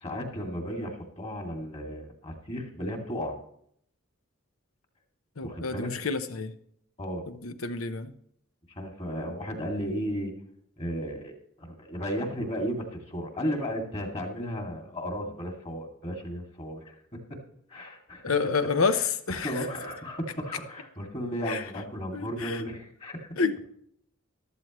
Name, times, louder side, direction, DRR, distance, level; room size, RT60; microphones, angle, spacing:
voice 1, 0.0-3.3 5.4-5.9 7.0-7.2 8.7-10.3 10.8-16.9 17.3-17.4 17.7-18.2 18.9-19.0 19.3-23.3, equal, 30° left, 2 dB, 2.4 m, -34 dB
voice 2, 5.4-6.5 7.3-8.1 18.2-19.7 21.4-21.6 22.1-22.6 23.4-23.6, left 5 dB, 80° left, 11 dB, 0.9 m, -29 dB
14.0 x 12.5 x 3.1 m, 0.68 s
head